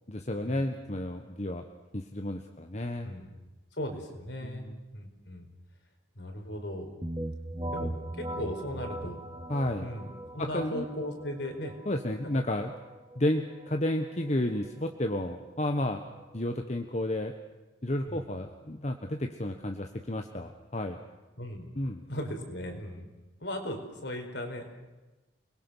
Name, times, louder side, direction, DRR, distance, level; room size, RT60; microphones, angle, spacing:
voice 1, 0.1-1.6 1.9-3.1 4.4-4.8 9.5-9.9 10.4-10.8 11.9-12.7 13.1-16.0 16.3-17.3 17.8-21.0 21.7-22.0, left 1 dB, 35° left, 5 dB, 1.2 m, -31 dB
voice 2, 3.0-3.4 3.8-4.7 4.9-5.5 6.1-6.9 7.7-9.2 9.8-11.7 12.2-12.3 18.1-18.3 21.4-21.7 22.1-23.1 23.4-24.8, left 1 dB, 65° left, 3 dB, 4.5 m, -37 dB
sound 1, 7.0-16.6, right 1 dB, 20° right, 1.2 m, -41 dB
29.5 x 21.5 x 6.4 m, 1.1 s
head